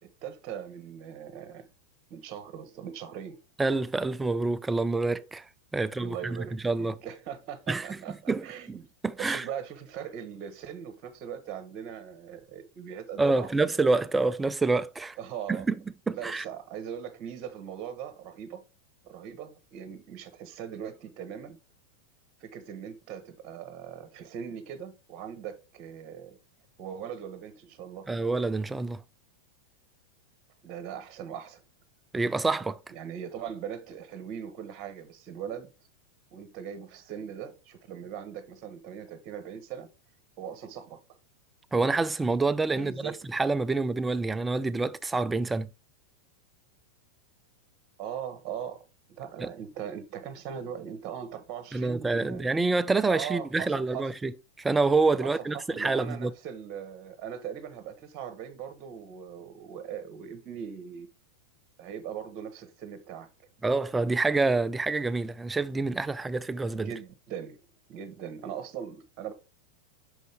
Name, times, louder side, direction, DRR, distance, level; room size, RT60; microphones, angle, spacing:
voice 1, 0.0-1.7 2.1-3.4 6.0-8.8 9.2-13.5 15.2-15.6 16.1-18.6 19.0-21.6 22.4-26.4 26.8-28.1 30.6-31.6 32.9-35.7 36.3-39.9 40.4-41.0 42.7-43.2 48.0-52.4 53.1-54.1 55.2-55.3 55.7-61.1 61.8-63.3 66.7-67.6 67.9-69.3, right 8 dB, 40° right, 1.1 m, -40 dB
voice 2, 3.6-5.4 5.7-7.0 7.7-8.0 8.3-8.8 9.0-9.4 13.2-15.2 15.5-15.7 16.1-16.4 28.1-29.0 32.1-32.8 41.7-45.7 49.4-49.5 51.7-54.3 54.6-56.3 63.6-66.9, right 3 dB, 10° right, 0.4 m, -27 dB
6.3 x 5.3 x 3.4 m
figure-of-eight pair, 90°, 0 cm